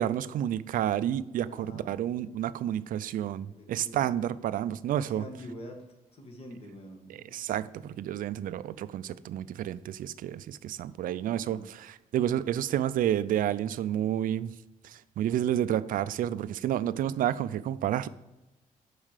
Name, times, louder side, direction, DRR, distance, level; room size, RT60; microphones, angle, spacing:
voice 1, 0.0-5.2 7.1-14.6 14.8-18.1, right 11 dB, 70° right, 0.4 m, -30 dB
voice 2, 1.5-1.9 3.5-4.1 5.1-5.8 6.1-7.5 11.4-11.6, equal, 40° left, 1.6 m, -45 dB
7.3 x 5.6 x 4.9 m
cardioid pair, 130°, 15 cm